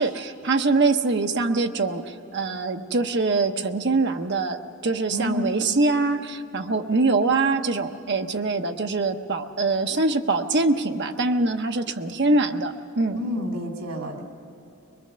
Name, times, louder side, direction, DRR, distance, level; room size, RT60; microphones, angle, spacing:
voice 1, 0.0-4.6 4.8-13.2, right 3 dB, 50° right, 6 dB, 0.9 m, -23 dB
voice 2, 5.1-5.4 13.1-14.2, left 1 dB, 85° right, 2 dB, 2.6 m, -29 dB
22.5 x 21.5 x 6.8 m, 2.8 s
head